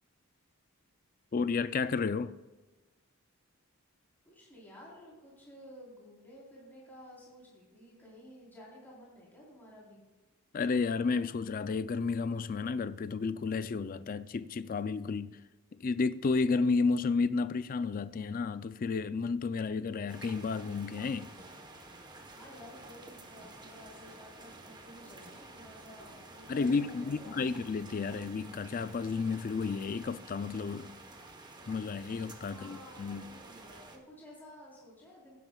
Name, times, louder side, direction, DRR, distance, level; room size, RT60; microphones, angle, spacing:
voice 1, 1.3-2.3 10.5-15.4 15.8-21.3 26.5-30.9 31.7-33.2, left 4 dB, 40° left, 0.3 m, -32 dB
voice 2, 4.3-10.0 22.3-27.5 32.5-35.4, equal, 10° left, 3.8 m, -53 dB
sound 1, 20.1-34.0, right 2 dB, 20° right, 1.0 m, -51 dB
16.0 x 11.0 x 2.3 m
head